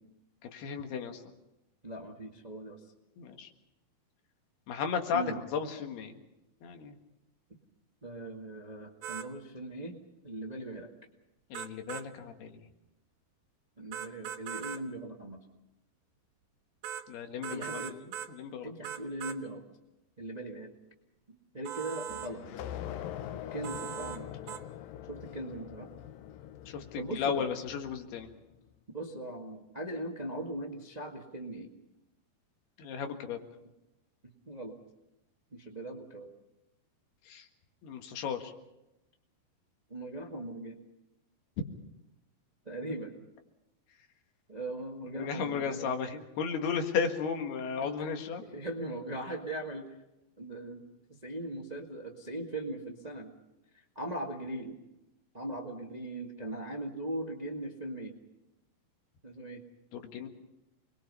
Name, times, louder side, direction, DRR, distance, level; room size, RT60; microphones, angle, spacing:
voice 1, 0.4-1.2 3.2-3.5 4.7-6.2 6.6-7.0 11.5-12.6 17.1-17.8 18.4-18.7 26.7-28.3 32.8-33.4 37.3-37.4 37.8-38.5 45.2-48.4 59.9-60.3, left 6 dB, 90° left, 5 dB, 3.8 m, -34 dB
voice 2, 1.8-2.8 5.1-5.4 8.0-10.0 10.2-10.9 13.8-15.4 17.5-18.0 18.6-19.6 20.2-20.7 21.3-22.4 23.3-24.3 25.1-25.9 27.0-27.5 28.9-31.7 34.5-34.8 35.5-36.3 39.9-40.8 42.6-43.1 44.5-45.8 47.8-48.1 48.4-49.9 50.4-50.8 51.1-53.3 53.7-54.8 55.3-58.1 59.2-59.6, right 1 dB, 30° right, 1 dB, 0.7 m, -39 dB
sound 1, 9.0-9.3 11.5-12.1 13.9-14.8 16.8-17.1 17.4-18.3 18.8-19.4 21.7-22.3 23.6-24.2 24.5-24.6, right 10 dB, 80° right, 2.9 m, -39 dB
sound 2, 22.1-28.5, left 11 dB, 75° left, 2.5 m, -43 dB
27.5 x 21.5 x 5.6 m, 0.92 s
omnidirectional pair, 4.4 m